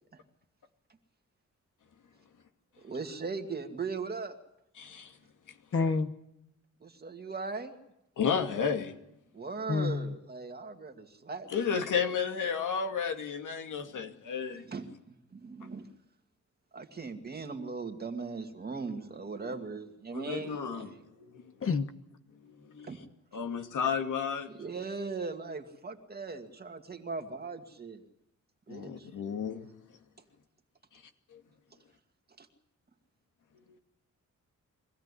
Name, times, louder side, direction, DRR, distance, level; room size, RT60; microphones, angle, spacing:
voice 1, 2.8-4.4 6.8-7.8 9.3-11.9 13.9-14.2 14.5-15.9 16.7-21.0 22.8-23.0 24.5-28.0 28.7-29.1 32.4-32.5, right 4 dB, 30° right, 2.2 m, -39 dB
voice 2, 4.8-5.1 8.2-9.0 11.5-14.6 20.1-20.9 21.3-21.4 22.7-22.9 23.3-24.5 28.7-29.7 31.3-31.4, left 6 dB, 85° left, 2.4 m, -32 dB
voice 3, 5.7-6.1 9.7-10.1 21.6-21.9, left 4 dB, 45° left, 1.1 m, -28 dB
24.0 x 16.5 x 9.8 m
wide cardioid pair, 145°, 30 cm